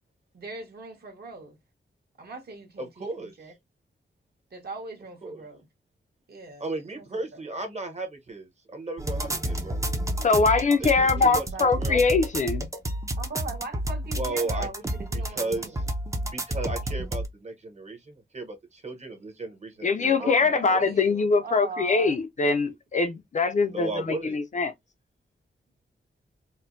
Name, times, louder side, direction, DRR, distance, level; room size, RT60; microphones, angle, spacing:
voice 1, 0.3-1.6 2.2-3.5 4.5-5.6 6.3-6.7 6.9-7.1 7.3-7.4 11.1-12.2 13.2-15.8 20.1-22.2, right 3 dB, 55° right, 1.2 m, -40 dB
voice 2, 2.8-3.3 5.2-5.4 6.6-9.8 10.8-11.4 11.8-12.0 14.1-14.7 15.1-15.8 16.2-20.9 23.6-24.4, right 2 dB, 35° right, 0.9 m, -35 dB
sound 1, 9.0-17.3, right 1 dB, 15° right, 0.5 m, -30 dB
voice 3, 10.2-12.7 19.8-24.7, left 4 dB, 40° left, 0.4 m, -23 dB
4.3 x 2.1 x 2.5 m
wide cardioid pair, 170°, 19 cm